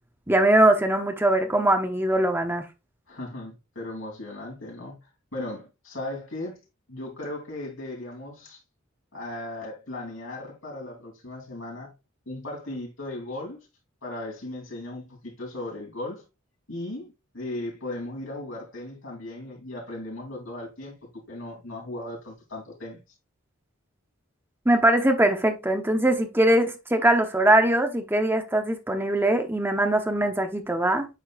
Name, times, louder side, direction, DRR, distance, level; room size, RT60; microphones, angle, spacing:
voice 1, 0.3-2.6 24.6-31.1, right 1 dB, 10° right, 0.9 m, -21 dB
voice 2, 3.1-6.6 6.9-8.6 9.1-11.9 12.2-13.7 14.0-16.2 16.7-23.0, left 1 dB, 80° left, 3.4 m, -37 dB
8.9 x 4.5 x 2.4 m
head